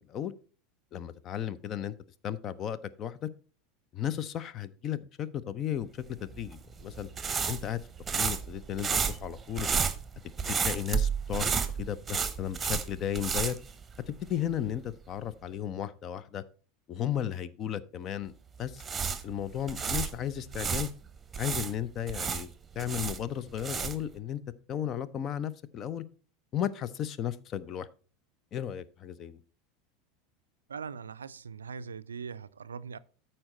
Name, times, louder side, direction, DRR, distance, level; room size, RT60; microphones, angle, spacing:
voice 1, 0.9-1.9 2.2-3.3 3.9-7.1 7.5-7.8 8.1-9.7 10.4-11.5 11.8-13.6 14.1-16.4 16.9-18.3 18.6-18.8 19.2-20.9 21.4-24.4 24.7-26.0 26.5-27.9 28.5-29.4, left 10 dB, 40° left, 0.6 m, -34 dB
sound 1, 6.3-14.4 14.6-14.8 18.6-20.9 21.3-24.1, right 6 dB, 20° right, 0.9 m, -32 dB
voice 2, 30.7-33.0, right 6 dB, 80° right, 0.4 m, -41 dB
13.5 x 4.5 x 3.9 m
figure-of-eight pair, 80°, 0 cm